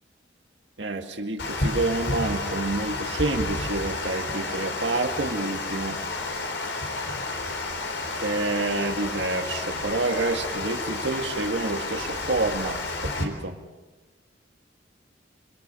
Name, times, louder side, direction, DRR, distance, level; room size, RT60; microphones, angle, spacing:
voice 1, 0.8-6.0 8.1-12.8 13.0-13.6, right 2 dB, 70° right, 4 dB, 2.0 m, -28 dB
Water, 1.4-13.2, left 2 dB, 80° left, 4.2 m, -31 dB
27.0 x 24.0 x 7.0 m, 1.2 s
head